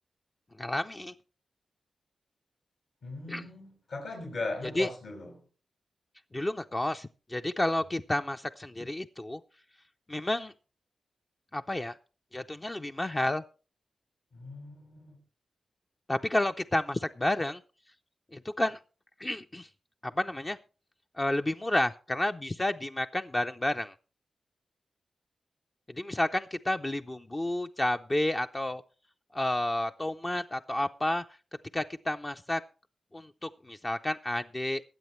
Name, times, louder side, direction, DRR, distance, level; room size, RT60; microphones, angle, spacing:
voice 1, 0.6-1.1 3.3-3.4 4.7-4.9 6.3-9.4 10.1-10.5 11.5-12.0 12.3-13.4 16.1-17.6 18.3-18.8 19.2-19.7 20.0-20.6 21.2-23.9 25.9-28.8 29.3-31.2 31.7-32.6 33.1-34.8, left 1 dB, 25° left, 6 dB, 0.5 m, -30 dB
voice 2, 3.0-5.3 14.3-15.2, left 2 dB, 75° left, 2 dB, 5.8 m, -38 dB
23.0 x 7.9 x 3.1 m, 0.36 s
cardioid pair, 80°, 0 cm